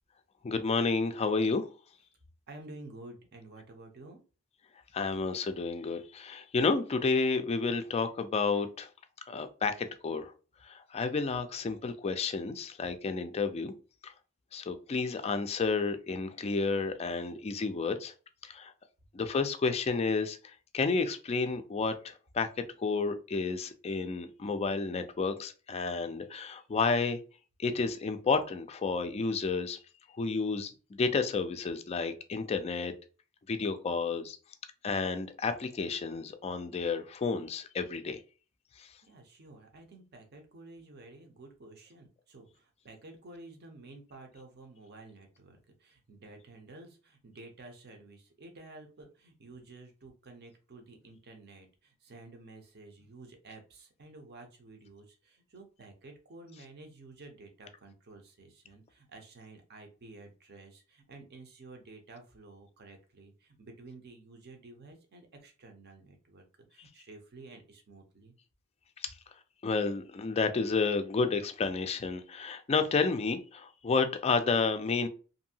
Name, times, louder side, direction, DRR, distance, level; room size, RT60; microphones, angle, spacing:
voice 1, 0.4-1.7 4.9-8.9 9.3-10.3 10.6-13.7 14.0-14.1 14.5-18.1 18.4-18.7 19.1-22.5 22.8-27.2 27.6-29.8 30.2-32.9 33.5-34.4 34.8-38.2 38.8-38.9 69.0-69.1 69.6-75.1, left 4 dB, 30° left, 8 dB, 0.3 m, -31 dB
voice 2, 2.5-4.2 39.0-66.4 66.7-68.3, right 2 dB, 50° right, 4 dB, 0.7 m, -51 dB
2.7 x 2.6 x 2.7 m, 0.36 s
head